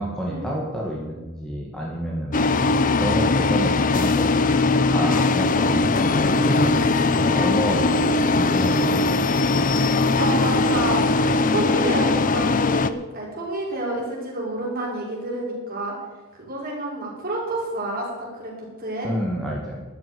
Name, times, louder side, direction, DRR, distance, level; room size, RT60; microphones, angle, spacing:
voice 1, 0.0-2.6 3.0-8.1 8.4-9.1 19.0-19.8, equal, ahead, -3 dB, 1.7 m, -29 dB
sound 1, 2.3-12.9, left 3 dB, 35° left, 0.6 m, -20 dB
voice 2, 10.2-15.9 16.3-18.1 18.3-19.1, right 1 dB, 40° right, -4 dB, 5.2 m, -29 dB
12.5 x 7.5 x 9.4 m, 1.2 s
head